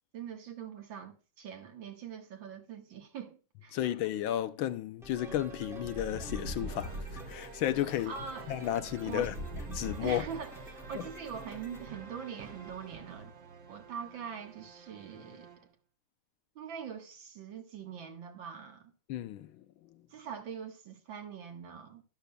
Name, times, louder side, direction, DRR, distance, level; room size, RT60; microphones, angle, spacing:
voice 1, 0.1-3.8 8.1-8.6 9.1-9.3 10.0-13.3 13.7-15.7 16.6-18.9 20.1-22.0, right 7 dB, 65° right, 2.2 m, -43 dB
voice 2, 3.7-8.1 8.5-9.3 9.7-10.2 19.1-20.0, left 12 dB, 75° left, 1.4 m, -33 dB
sound 1, 5.0-11.9, right 1 dB, ahead, 1.0 m, -51 dB
sound 2, 5.2-15.7, right 4 dB, 45° right, 1.1 m, -49 dB
sound 3, 5.8-7.4 8.9-10.7, equal, 85° right, 5.0 m, -41 dB
12.0 x 12.0 x 2.2 m
omnidirectional pair, 2.3 m